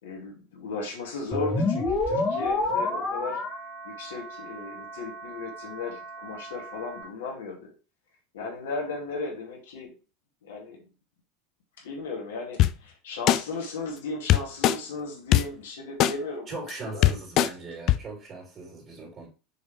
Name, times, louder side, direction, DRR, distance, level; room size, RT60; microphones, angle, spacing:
voice 1, 0.0-3.4 3.8-7.7 8.3-9.9 10.4-10.8 11.8-17.1, left 3 dB, 70° left, 0 dB, 2.4 m, -36 dB
sound 1, 1.3-7.0, left 2 dB, 25° left, 1.9 m, -30 dB
sound 2, 12.6-12.7 13.3-13.4 14.3-14.8 15.3-15.4 16.0-16.1 16.7-16.8 17.0-17.5 17.9-18.0, left 13 dB, 45° left, 0.4 m, -19 dB
voice 2, 16.5-19.3, right 3 dB, 35° right, -3 dB, 3.5 m, -39 dB
6.5 x 5.3 x 3.3 m, 0.34 s
figure-of-eight pair, 80°, 0 cm